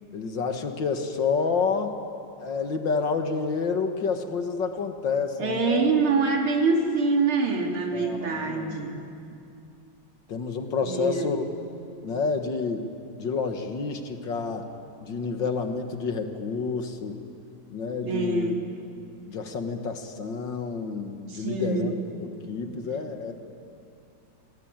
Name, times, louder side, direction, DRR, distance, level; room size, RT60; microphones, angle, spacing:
voice 1, 0.1-2.0 2.4-5.9 7.9-8.8 10.3-11.5 12.0-12.9 13.2-14.7 15.0-17.2 17.7-18.5 19.3-21.9 22.2-23.3, left 5 dB, 60° left, 6 dB, 2.2 m, -29 dB
voice 2, 5.4-9.0 10.8-11.4 18.0-18.6 21.3-21.9, right 4 dB, 80° right, 1 dB, 3.5 m, -25 dB
27.5 x 20.5 x 9.0 m, 2.6 s
omnidirectional pair, 2.3 m